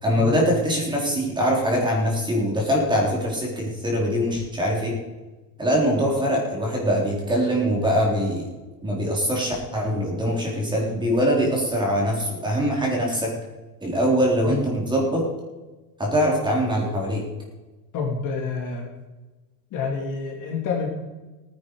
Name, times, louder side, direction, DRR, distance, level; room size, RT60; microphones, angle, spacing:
voice 1, 0.0-5.0 5.6-8.5 8.8-13.3 13.8-15.2 16.0-17.2, equal, 10° right, -2 dB, 4.0 m, -23 dB
voice 2, 17.9-18.9 19.7-20.9, left 5 dB, 40° left, 0 dB, 2.7 m, -28 dB
18.0 x 10.0 x 4.9 m, 1.2 s
supercardioid pair, 155°, 50 cm